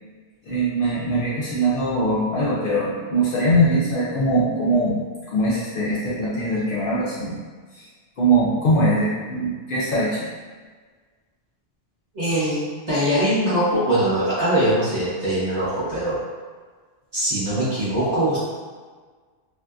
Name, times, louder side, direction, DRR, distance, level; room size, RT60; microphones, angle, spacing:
voice 1, 0.4-5.0 5.3-7.4 7.7-7.8 8.2-10.3, right 1 dB, 60° left, -8 dB, 0.7 m, -21 dB
voice 2, 12.1-16.2 17.1-18.4, right 1 dB, 40° right, -11 dB, 1.0 m, -22 dB
2.7 x 2.5 x 2.2 m, 1.5 s
omnidirectional pair, 1.2 m